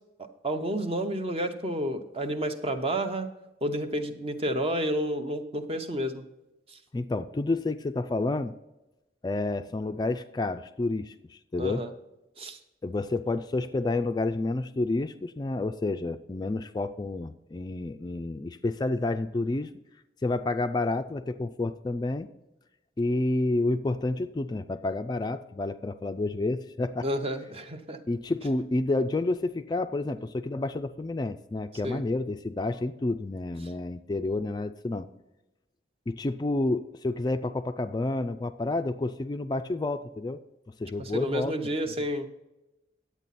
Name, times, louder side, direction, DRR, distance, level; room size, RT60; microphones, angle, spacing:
voice 1, 0.2-3.3 3.6-6.2 6.7-6.8 11.6-11.9 12.4-12.6 27.0-28.0 31.8-32.0 41.0-42.3, right 1 dB, 35° right, 8 dB, 0.8 m, -30 dB
voice 2, 6.9-8.5 9.2-11.8 12.8-19.7 20.2-22.3 23.0-27.1 28.1-35.1 36.1-40.4 40.8-41.7, left 2 dB, 25° left, 9 dB, 0.3 m, -29 dB
10.5 x 8.3 x 4.1 m, 0.96 s
head